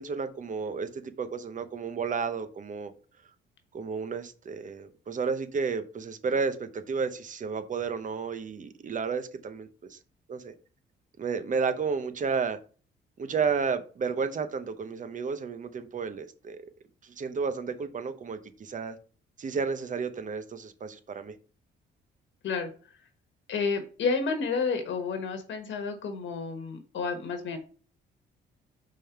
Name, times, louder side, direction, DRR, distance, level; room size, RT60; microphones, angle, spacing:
voice 1, 0.0-2.9 3.7-10.0 10.3-10.5 11.2-12.6 13.2-16.7 17.0-19.0 19.4-21.3, right 5 dB, 40° right, 0.8 m, -32 dB
voice 2, 23.5-27.6, left 4 dB, 70° left, 1.3 m, -30 dB
5.2 x 3.8 x 5.7 m
cardioid pair, 90°, 20 cm